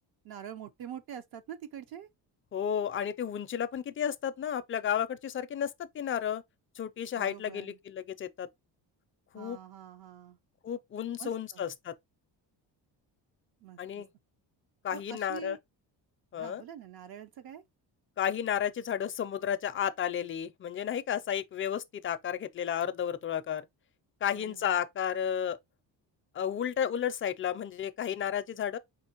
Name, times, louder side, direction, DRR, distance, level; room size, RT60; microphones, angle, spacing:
voice 1, 0.2-2.1 7.1-7.8 9.3-10.4 11.2-11.6 13.6-14.0 14.9-15.6 16.4-17.6 24.4-24.8, right 9 dB, 55° right, 0.8 m, -45 dB
voice 2, 2.5-6.4 6.8-8.5 9.3-9.6 10.6-11.9 13.8-14.1 14.8-15.6 16.3-16.6 18.2-23.6 24.2-25.6 26.3-28.8, left 9 dB, 30° left, 0.4 m, -32 dB
4.4 x 2.9 x 2.9 m
cardioid pair, 130°, 43 cm